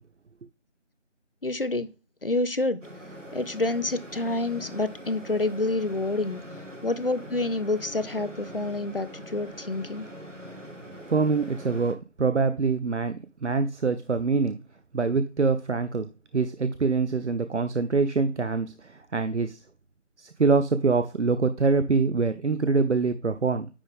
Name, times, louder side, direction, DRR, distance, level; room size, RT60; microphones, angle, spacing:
voice 1, 1.4-1.9 2.2-2.8 3.3-6.4 6.8-10.1, left 2 dB, 50° left, 0.6 m, -28 dB
sound 1, 2.8-11.9, equal, 85° right, 1.6 m, -43 dB
voice 2, 11.1-14.6 14.9-19.6 20.2-23.7, right 4 dB, 70° right, 0.6 m, -25 dB
9.8 x 3.6 x 3.6 m
figure-of-eight pair, 170°, 36 cm